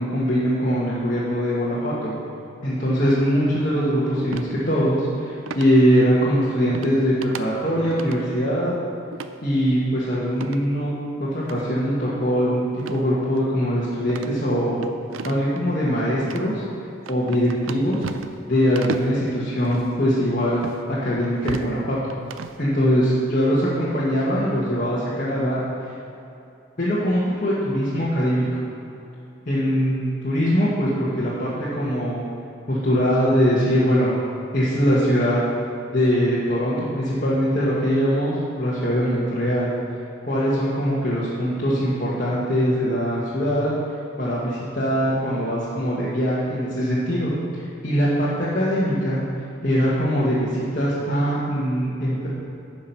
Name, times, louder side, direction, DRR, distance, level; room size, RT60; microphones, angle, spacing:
voice 1, 0.0-2.1 2.6-8.7 9.4-10.9 11.2-12.6 12.9-14.8 15.2-16.6 17.1-18.1 18.5-20.6 21.0-22.0 22.6-25.6 26.8-28.6 29.4-32.2 32.7-34.1 34.5-35.4 35.9-39.7 40.2-43.7 44.2-49.2 49.6-52.3, equal, 40° left, -9 dB, 1.6 m, -22 dB
sound 1, 4.3-4.5 5.5-5.7 6.7-7.0 7.2-7.4 7.8-8.2 9.1-9.3 10.3-10.6 11.4-11.6 12.8-13.1 13.4-13.5 14.1-15.6 16.2-16.4 17.1-18.4 18.8-19.1 19.6-19.9 20.6-20.8 21.2-21.7 22.1-22.6, right 5 dB, 75° right, 0.5 m, -33 dB
9.8 x 6.3 x 5.9 m, 2.7 s
head